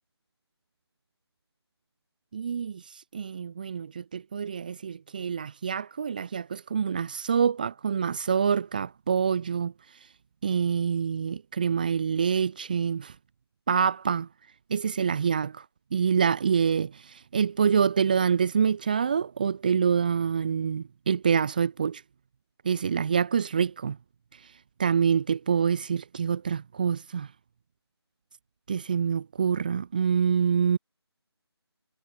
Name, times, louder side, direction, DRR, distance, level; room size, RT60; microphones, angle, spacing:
voice 1, 2.3-10.0 10.4-13.2 13.7-14.3 14.7-15.7 15.9-22.0 22.6-24.0 24.3-27.3 28.7-30.8, right 7 dB, 20° right, 1.8 m, -26 dB
figure-of-eight pair, 170°, 14 cm